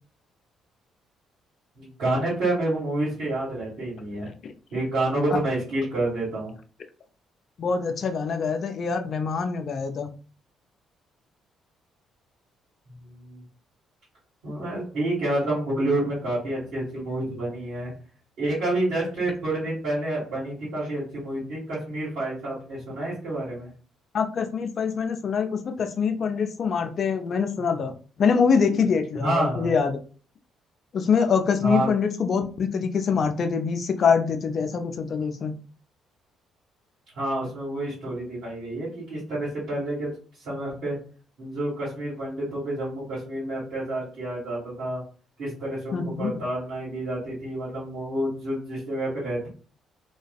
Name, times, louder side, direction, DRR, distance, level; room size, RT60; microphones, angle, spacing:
voice 1, 1.8-4.3 4.7-6.5 13.0-13.4 14.4-17.9 18.4-23.7 29.2-29.7 31.6-31.9 37.1-40.1 40.4-41.0 41.4-45.0 45.4-49.5, right 1 dB, 75° right, -10 dB, 1.3 m, -28 dB
voice 2, 7.6-10.1 24.1-27.9 28.2-29.9 30.9-35.5 45.9-46.3, left 6 dB, 55° left, 7 dB, 0.4 m, -24 dB
2.3 x 2.3 x 2.3 m, 0.39 s
hypercardioid pair, 50°, 0 cm